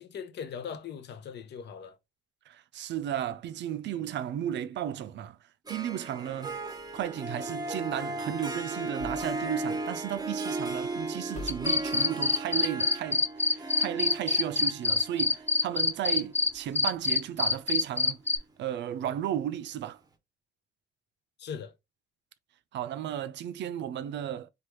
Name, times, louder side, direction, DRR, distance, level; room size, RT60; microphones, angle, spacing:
voice 1, 0.0-2.0 21.4-21.7, left 7 dB, 60° left, 0.6 m, -40 dB
voice 2, 2.5-5.4 5.7-6.6 6.9-18.2 18.6-20.0 22.7-24.5, right 11 dB, 65° right, 0.4 m, -34 dB
Harp, 5.7-17.1, right 2 dB, 20° right, 0.7 m, -36 dB
sound 1, 6.7-7.3 9.0-9.8 10.2-10.4 10.7-11.0 11.3-12.0, left 1 dB, 35° left, 1.1 m, -45 dB
sound 2, 11.5-16.5 16.8-18.4, left 3 dB, 10° left, 0.3 m, -24 dB
3.3 x 2.4 x 3.0 m
cardioid pair, 90°, 20 cm